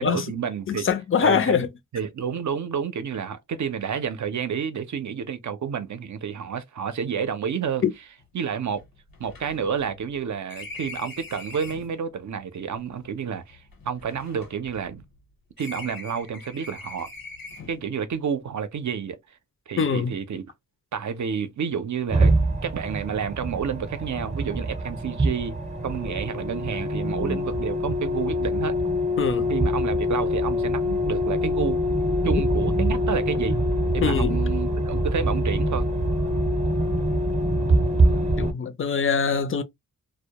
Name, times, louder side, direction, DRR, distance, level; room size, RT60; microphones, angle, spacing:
voice 1, 0.0-0.9 1.2-1.6 1.9-7.8 8.3-8.8 9.2-15.0 15.6-17.1 17.7-19.2 19.7-20.5 20.9-22.3 22.6-25.6 25.8-28.8 29.5-33.6 33.9-35.9, right 7 dB, 60° right, 0.5 m, -30 dB
voice 2, 0.7-1.7 7.8-7.9 19.8-20.1 29.2-29.5 34.0-34.4 38.4-39.6, left 6 dB, 40° left, 0.4 m, -23 dB
sound 1, 8.2-8.3 8.7-12.0 12.8-15.2 15.6-17.9, left 3 dB, 85° left, 1.0 m, -42 dB
sound 2, 22.1-38.5, equal, 20° right, 0.6 m, -24 dB
2.1 x 2.1 x 2.8 m
wide cardioid pair, 95°, 34 cm